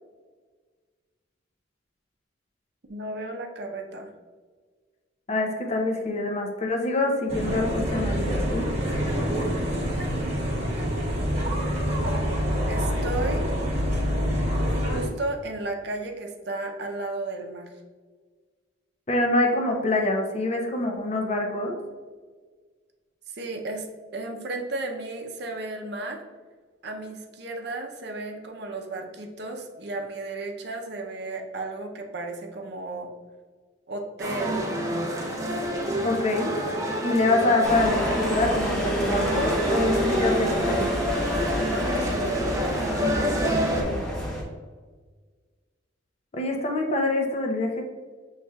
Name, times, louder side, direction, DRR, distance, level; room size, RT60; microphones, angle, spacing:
voice 1, 2.9-4.1 12.7-13.4 14.7-17.7 23.3-23.9 24.1-26.2 26.8-33.1 33.9-34.7 41.7-42.9, right 2 dB, 60° right, 2 dB, 0.6 m, -34 dB
voice 2, 5.3-8.7 19.1-21.8 36.0-36.6 37.0-40.9 43.6-44.0 46.3-47.8, left 2 dB, 35° left, 2 dB, 0.6 m, -25 dB
sound 1, 7.3-15.1, equal, 35° right, 1.1 m, -26 dB
sound 2, 34.2-43.8, equal, 15° right, 0.5 m, -27 dB
sound 3, 37.6-44.4, equal, 5° left, 0.9 m, -29 dB
6.8 x 3.1 x 2.3 m, 1.5 s
head